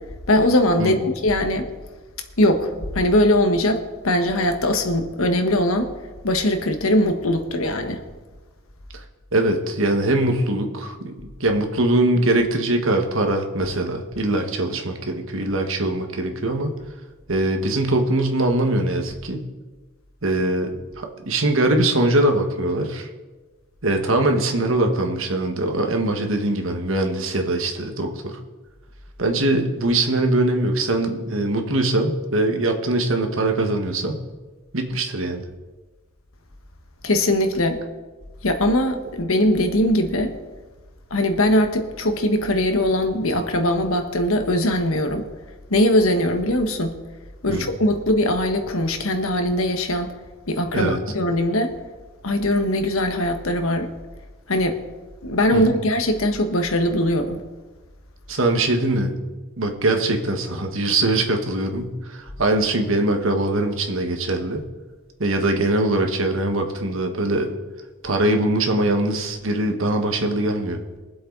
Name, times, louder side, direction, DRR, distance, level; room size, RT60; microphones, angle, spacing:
voice 1, 0.3-1.7 2.4-5.9 6.2-8.0 37.0-37.8 38.4-40.3 41.1-45.3 45.7-47.0 47.4-50.1 50.5-51.7 52.2-53.9 54.5-54.8 55.2-57.4, left 1 dB, 90° left, 6 dB, 1.4 m, -21 dB
voice 2, 9.3-16.8 17.3-19.5 20.2-23.1 23.8-28.4 29.2-34.2 34.7-35.4 47.5-47.7 50.7-51.0 55.5-55.8 58.3-59.1 59.6-64.6 65.2-67.6 68.0-70.8, right 2 dB, 75° right, 4 dB, 1.6 m, -22 dB
22.5 x 7.8 x 4.0 m, 1.3 s
head